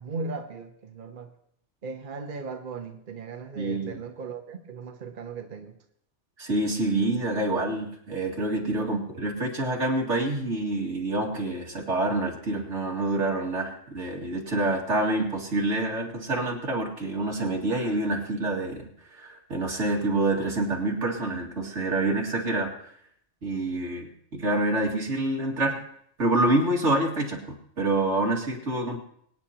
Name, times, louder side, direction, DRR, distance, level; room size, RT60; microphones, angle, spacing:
voice 1, 0.0-1.3 1.8-5.8 8.8-9.0, right 4 dB, 45° right, 4 dB, 1.1 m, -37 dB
voice 2, 3.6-4.0 6.4-22.7 23.4-25.8 26.2-29.0, right 2 dB, 90° right, 0 dB, 2.5 m, -27 dB
24.5 x 9.5 x 2.9 m, 0.68 s
omnidirectional pair, 1.2 m